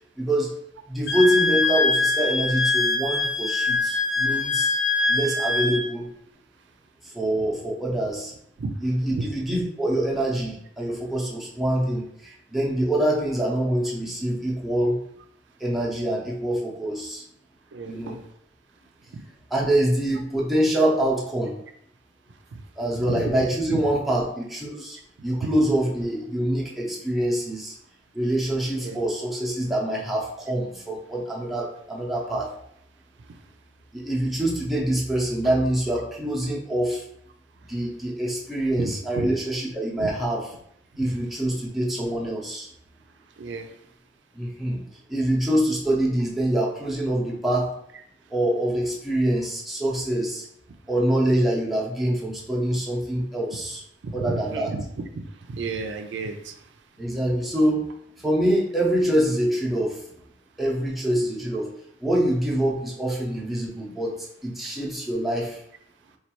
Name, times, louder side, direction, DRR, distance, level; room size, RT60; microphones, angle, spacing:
voice 1, 0.2-0.5 0.9-4.7 5.1-6.1 7.0-8.3 8.8-15.0 15.6-17.2 17.8-18.2 19.5-21.6 22.8-27.7 28.1-32.5 33.9-37.0 37.7-40.5 41.0-42.7 44.3-47.7 48.3-50.5 50.9-53.8 54.1-54.7 57.0-57.8 58.2-60.0 60.6-61.7 62.0-65.6, right 1 dB, ahead, -5 dB, 0.6 m, -25 dB
Wind instrument woodwind instrument, 1.1-5.8, left 3 dB, 55° left, 0.7 m, -23 dB
voice 2, 17.7-18.2 22.5-22.6 23.1-23.3 23.7-23.8 28.8-29.0 38.8-39.3 40.0-40.1 43.4-43.7 54.0-54.8 55.1-56.6, right 3 dB, 85° right, 6 dB, 0.4 m, -32 dB
4.3 x 2.3 x 2.9 m, 0.70 s
head